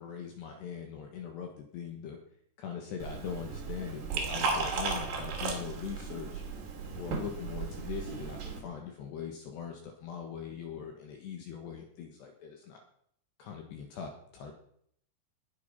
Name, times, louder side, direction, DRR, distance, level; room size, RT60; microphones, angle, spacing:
voice 1, 0.0-2.2 2.6-6.4 7.0-12.8 13.4-14.5, left 7 dB, 65° left, 3 dB, 3.3 m, -41 dB
Liquid, 3.0-8.6, right 4 dB, 55° right, 4.6 m, -35 dB
20.0 x 8.8 x 5.6 m, 0.67 s
omnidirectional pair, 5.9 m